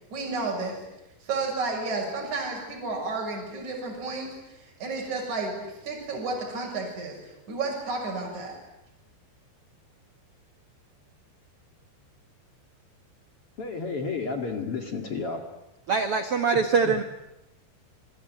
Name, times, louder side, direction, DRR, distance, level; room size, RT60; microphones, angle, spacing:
voice 1, 0.1-0.8 1.2-7.2 7.5-8.6, right 3 dB, 45° right, 0 dB, 7.9 m, -32 dB
voice 2, 13.6-15.4 16.5-17.0, left 4 dB, 40° left, 5 dB, 2.5 m, -32 dB
voice 3, 15.9-17.0, right 5 dB, 85° right, 8 dB, 1.2 m, -23 dB
27.0 x 23.5 x 9.4 m, 0.91 s
omnidirectional pair, 4.9 m